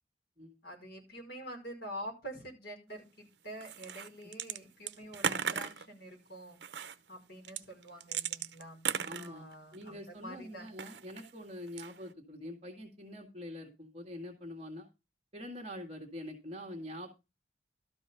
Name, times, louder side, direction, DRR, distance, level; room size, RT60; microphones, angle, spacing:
voice 1, 0.6-6.6 7.1-10.7, right 1 dB, 60° left, 1 dB, 5.1 m, -46 dB
sound 1, 3.6-4.6 4.9-5.9 6.6-7.0 7.5-9.9 10.7-11.3 11.7-12.1, right 8 dB, 70° right, 0.8 m, -36 dB
voice 2, 9.0-9.5 9.7-14.9 15.3-17.1, left 1 dB, 35° right, 1 dB, 1.9 m, -45 dB
13.0 x 5.4 x 5.6 m, 0.26 s
head